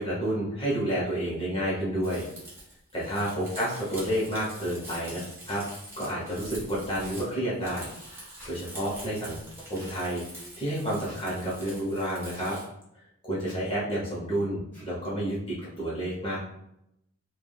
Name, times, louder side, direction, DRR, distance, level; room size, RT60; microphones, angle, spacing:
voice 1, 0.0-2.3 2.9-5.6 6.0-7.9 8.1-9.4 9.7-12.5 13.2-16.4, right 1 dB, 25° left, -7 dB, 0.8 m, -30 dB
Crumpling crinkling, 2.0-12.6, right 1 dB, 10° right, 0.8 m, -45 dB
sound 1, 5.5-5.6 7.0-7.2 8.4-8.5 9.8-9.9 11.0-11.2 12.3-12.5 13.4-13.6 14.7-14.9, equal, 10° left, 1.5 m, -50 dB
3.3 x 2.2 x 2.3 m, 0.81 s
head